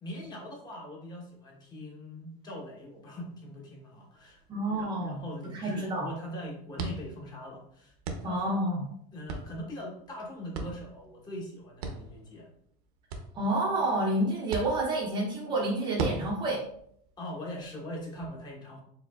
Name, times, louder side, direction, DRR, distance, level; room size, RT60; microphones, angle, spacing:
voice 1, 0.0-8.4 9.1-12.5 17.2-18.8, left 1 dB, 20° left, -1 dB, 1.0 m, -41 dB
sound 1, 4.1-18.3, right 4 dB, 65° right, 0.9 m, -42 dB
voice 2, 4.5-5.2 5.5-6.1 8.2-8.9 13.3-16.6, right 1 dB, 20° right, -3 dB, 0.7 m, -29 dB
4.8 x 3.8 x 2.4 m, 0.68 s
supercardioid pair, 165°, 21 cm